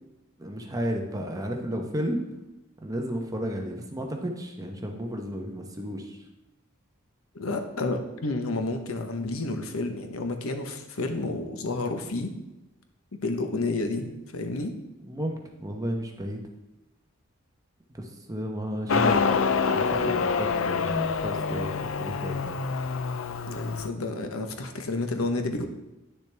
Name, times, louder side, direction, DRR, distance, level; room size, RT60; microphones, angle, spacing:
voice 1, 0.4-2.2 2.8-6.2 15.0-16.4 17.9-19.2 19.7-21.7 22.0-22.6, equal, 15° right, 2 dB, 1.0 m, -33 dB
voice 2, 7.3-12.3 13.1-14.8 23.5-25.6, left 2 dB, 85° left, 6 dB, 1.0 m, -30 dB
Motorcycle, 18.9-23.9, left 5 dB, 70° left, 0.5 m, -26 dB
10.0 x 6.7 x 3.4 m, 0.95 s
head